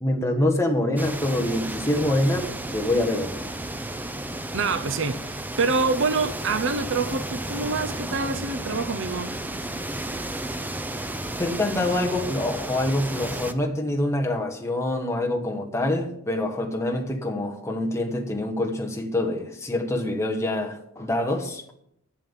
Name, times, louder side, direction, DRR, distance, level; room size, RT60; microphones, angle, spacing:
voice 1, 0.0-3.4 11.4-21.6, left 1 dB, 15° left, 1.2 m, -25 dB
sound 1, 1.0-13.5, right 1 dB, 10° right, 0.5 m, -33 dB
voice 2, 4.5-9.3, right 4 dB, 60° right, 0.7 m, -26 dB
8.5 x 7.4 x 8.9 m
head